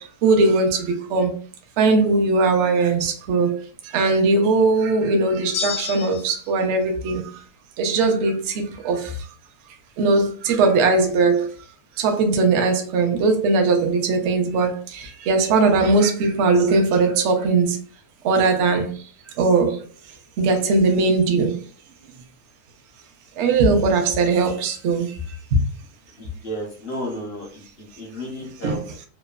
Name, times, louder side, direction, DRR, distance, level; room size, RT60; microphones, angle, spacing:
voice 1, 0.2-1.3 1.8-3.6 3.9-7.2 7.8-9.1 10.0-11.5 12.0-14.7 15.3-17.8 18.2-18.9 19.4-19.7 20.4-21.5 23.4-25.1 25.5-25.6 28.6-28.8, right 3 dB, 70° right, 0.7 m, -19 dB
sound 1, 5.5-6.5, left 7 dB, 80° left, 1.1 m, -29 dB
voice 2, 26.2-28.9, equal, 65° left, 0.6 m, -33 dB
3.0 x 2.0 x 2.2 m
omnidirectional pair, 1.7 m